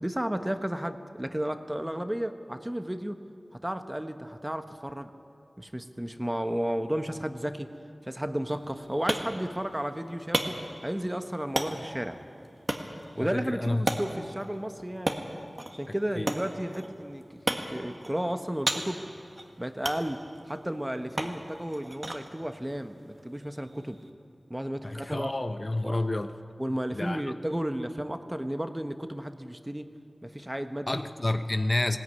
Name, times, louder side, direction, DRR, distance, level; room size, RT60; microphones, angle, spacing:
voice 1, 0.0-3.2 3.5-5.1 5.6-7.7 8.0-12.2 13.2-15.2 15.7-19.0 19.6-24.0 24.5-25.3 25.8-26.0 26.6-29.9 30.2-31.0, right 1 dB, 15° right, 8 dB, 1.1 m, -33 dB
sound 1, 8.5-24.1, right 1 dB, 35° right, 1.7 m, -36 dB
voice 2, 13.2-13.8 16.2-16.3 24.8-26.3 26.9-27.2 30.9-32.0, left 2 dB, 40° left, 9 dB, 0.8 m, -29 dB
20.0 x 17.0 x 9.7 m, 2.6 s
wide cardioid pair, 65°, 0 cm